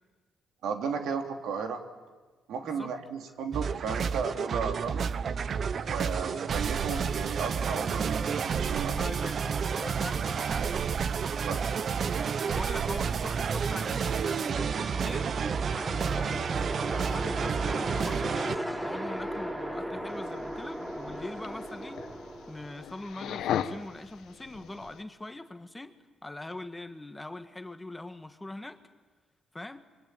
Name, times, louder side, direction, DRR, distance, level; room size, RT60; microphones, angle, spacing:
voice 1, 0.6-1.8 2.5-5.1 5.8-9.0 11.4-11.7, right 6 dB, 80° right, 4 dB, 3.2 m, -34 dB
sound 1, 3.5-18.6, right 6 dB, 50° right, 0.8 m, -30 dB
voice 2, 9.0-10.9 12.5-15.3 15.6-22.0 22.5-25.9 26.2-28.8 29.5-29.8, left 2 dB, 15° left, 8 dB, 1.7 m, -42 dB
sound 2, 14.0-23.0, equal, 15° right, 7.3 m, -37 dB
sound 3, 20.1-25.0, left 10 dB, 80° left, 1.2 m, -38 dB
26.0 x 24.0 x 9.3 m, 1.4 s
cardioid pair, 90°, 0 cm